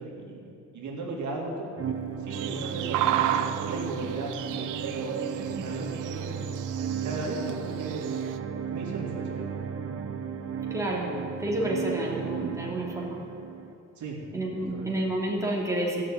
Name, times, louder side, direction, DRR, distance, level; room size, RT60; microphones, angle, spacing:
voice 1, 0.0-1.7 2.2-4.3 4.8-6.5 7.0-8.0 8.7-9.5 14.0-14.2 14.5-14.9, right 3 dB, 70° right, -2 dB, 2.5 m, -36 dB
sound 1, 1.8-13.7, right 7 dB, 50° right, 1.0 m, -34 dB
sound 2, 2.3-8.4, right 11 dB, 85° right, 0.7 m, -33 dB
voice 2, 10.7-11.1 11.4-13.2 14.3-16.0, right 1 dB, 10° right, -3 dB, 2.7 m, -29 dB
13.5 x 6.4 x 8.7 m, 2.7 s
cardioid pair, 90°, 30 cm